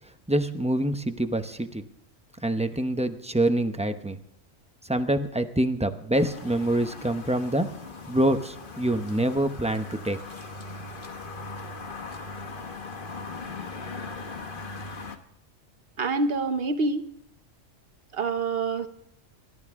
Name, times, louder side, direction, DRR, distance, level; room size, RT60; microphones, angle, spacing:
voice 1, 0.3-1.9 2.4-4.2 4.8-7.7 8.1-10.2, right 1 dB, 5° right, 8 dB, 0.6 m, -26 dB
sound 1, 6.1-15.2, left 3 dB, 40° left, 1.3 m, -39 dB
voice 2, 16.0-17.1 18.1-18.9, right 3 dB, 50° right, 9 dB, 1.1 m, -26 dB
27.0 x 12.5 x 3.7 m, 0.75 s
omnidirectional pair, 1.3 m